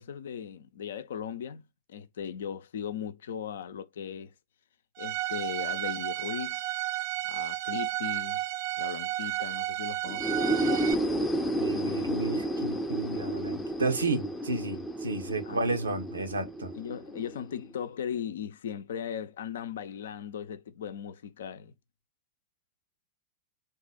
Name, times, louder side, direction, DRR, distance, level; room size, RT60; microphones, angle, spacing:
voice 1, 0.0-4.3 5.0-6.6 7.2-8.4 8.8-10.4 15.4-15.6 16.7-21.7, left 8 dB, 60° left, 0.6 m, -38 dB
Bowed string instrument, 5.0-10.9, right 15 dB, 45° right, 0.4 m, -32 dB
sound 1, 10.1-17.7, right 1 dB, 5° left, 0.6 m, -31 dB
voice 2, 11.6-16.7, right 2 dB, 75° right, 0.9 m, -32 dB
3.9 x 2.7 x 3.7 m
figure-of-eight pair, 90°, 0 cm